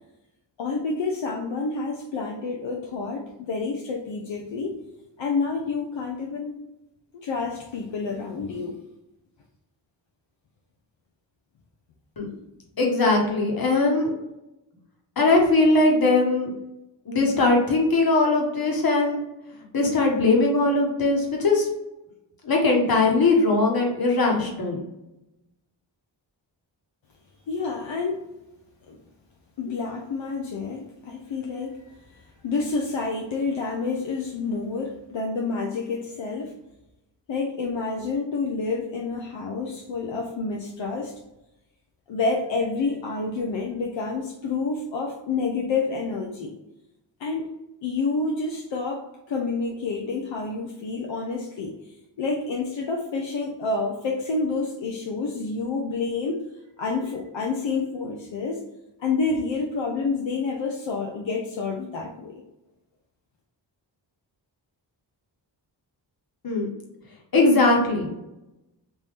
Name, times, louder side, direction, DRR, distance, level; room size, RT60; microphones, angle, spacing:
voice 1, 0.6-4.7 5.2-6.5 7.1-8.8 27.5-28.2 28.9-29.0 29.6-36.5 37.3-41.1 42.1-46.5 47.2-47.5 47.8-49.0 49.3-51.7 52.2-56.4 56.8-58.6 59.0-62.3, left 4 dB, 75° left, 0 dB, 0.7 m, -28 dB
voice 2, 12.8-14.1 15.2-16.5 17.1-19.2 19.7-21.7 22.4-24.8 66.4-66.7 67.3-68.1, left 2 dB, 50° left, 0 dB, 1.3 m, -20 dB
3.7 x 2.6 x 3.1 m, 0.93 s
cardioid pair, 70°, 46 cm